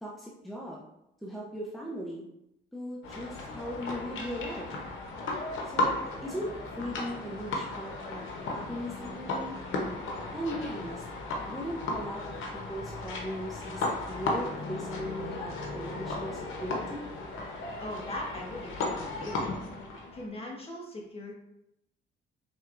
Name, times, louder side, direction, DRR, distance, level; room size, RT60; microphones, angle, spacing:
voice 1, 0.0-0.8 1.2-2.3 2.7-4.7 5.7-6.5 6.8-9.6 10.3-11.0 11.4-17.0, equal, ahead, -4 dB, 0.6 m, -38 dB
sound 1, 3.0-20.3, left 2 dB, 85° left, 0.8 m, -35 dB
voice 2, 17.8-19.5 20.1-21.4, left 1 dB, 30° left, -1 dB, 1.1 m, -40 dB
4.4 x 3.3 x 2.5 m, 0.83 s
cardioid pair, 90°, 20 cm